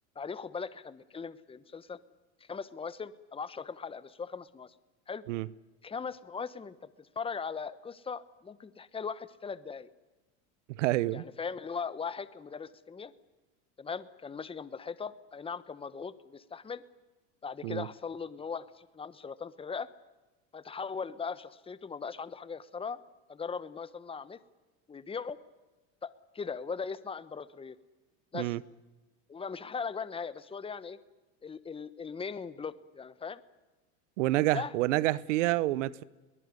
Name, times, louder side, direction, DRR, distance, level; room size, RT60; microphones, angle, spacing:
voice 1, 0.1-2.0 2.5-4.7 5.1-5.2 5.8-9.9 11.1-13.1 13.8-16.8 17.4-19.9 20.5-23.0 23.3-24.4 24.9-25.4 26.0-27.8 28.3-28.5 29.3-31.0 31.4-33.4 34.5-34.7, left 5 dB, 15° left, 1.1 m, -39 dB
voice 2, 10.7-11.2 17.6-17.9 28.3-28.6 34.2-36.0, right 16 dB, 85° right, 0.9 m, -28 dB
22.5 x 19.5 x 9.6 m
supercardioid pair, 110°, 36 cm